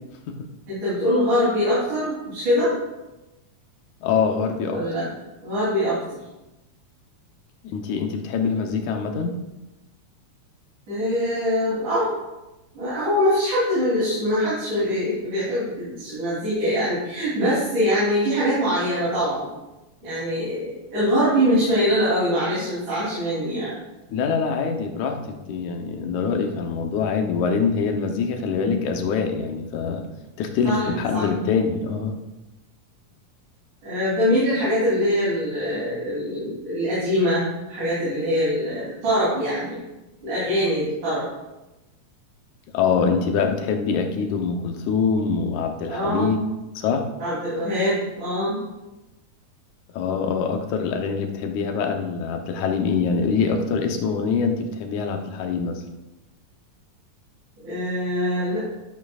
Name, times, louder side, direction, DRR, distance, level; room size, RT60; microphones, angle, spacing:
voice 1, 0.7-2.7 4.7-5.1 5.4-6.2 10.9-12.1 12.7-19.5 20.0-23.7 28.5-28.8 30.7-30.9 31.1-31.2 33.8-39.8 40.2-41.3 45.9-46.3 47.2-48.6 57.6-58.7, equal, 80° right, -11 dB, 4.7 m, -23 dB
voice 2, 4.0-4.8 7.6-9.4 24.1-30.1 30.4-32.2 42.7-46.4 46.8-47.1 49.9-55.8, left 5 dB, 80° left, 4 dB, 2.3 m, -24 dB
12.5 x 8.1 x 2.4 m, 1.0 s
omnidirectional pair, 3.4 m